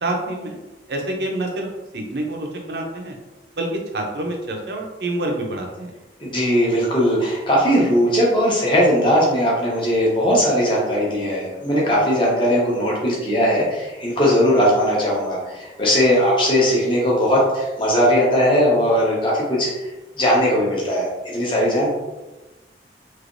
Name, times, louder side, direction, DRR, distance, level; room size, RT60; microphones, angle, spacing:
voice 1, 0.0-1.7 1.9-3.2 3.6-3.7 3.9-5.9, right 1 dB, 65° right, 2 dB, 0.6 m, -27 dB
voice 2, 6.3-19.9 20.2-21.9, equal, 30° left, -5 dB, 0.9 m, -19 dB
3.2 x 2.9 x 2.6 m, 1.1 s
head